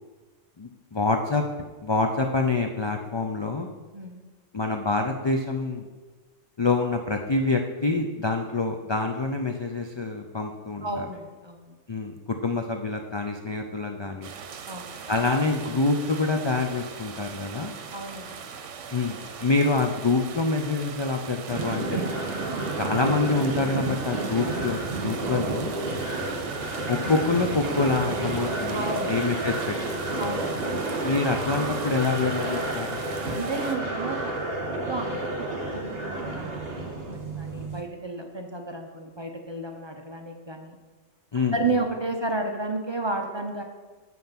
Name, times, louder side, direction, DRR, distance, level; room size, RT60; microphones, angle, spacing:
voice 1, 0.6-1.4 1.8-3.7 4.5-5.9 6.6-11.1 11.9-14.3 15.1-17.7 18.9-22.0 22.8-25.7 26.9-30.0 31.0-33.0 41.3-41.6, left 3 dB, 50° left, 4 dB, 0.3 m, -26 dB
voice 2, 10.8-11.7 14.7-14.9 17.9-18.4 27.0-27.1 28.7-29.1 30.2-30.7 33.3-34.3 34.6-40.8 41.5-43.6, right 2 dB, 30° right, 3 dB, 0.6 m, -32 dB
sound 1, 14.2-33.8, right 6 dB, 85° right, 1.1 m, -40 dB
sound 2, 21.5-37.8, right 2 dB, 55° right, 1.7 m, -30 dB
7.6 x 5.5 x 5.8 m, 1.3 s
omnidirectional pair, 1.2 m